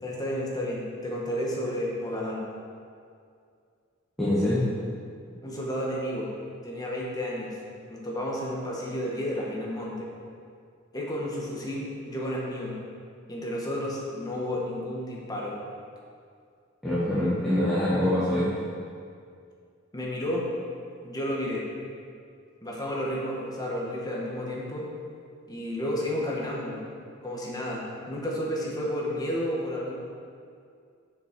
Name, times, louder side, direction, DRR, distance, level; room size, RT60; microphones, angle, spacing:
voice 1, 0.0-2.4 5.4-6.3 6.6-7.6 7.9-10.1 10.9-12.7 13.3-15.6 19.9-20.5 21.0-21.6 22.6-24.9 25.5-26.8 27.2-29.9, equal, 20° left, -4 dB, 1.5 m, -31 dB
voice 2, 4.2-4.6 16.8-18.5, left 1 dB, ahead, -12 dB, 1.7 m, -24 dB
7.2 x 6.1 x 5.4 m, 2.3 s
head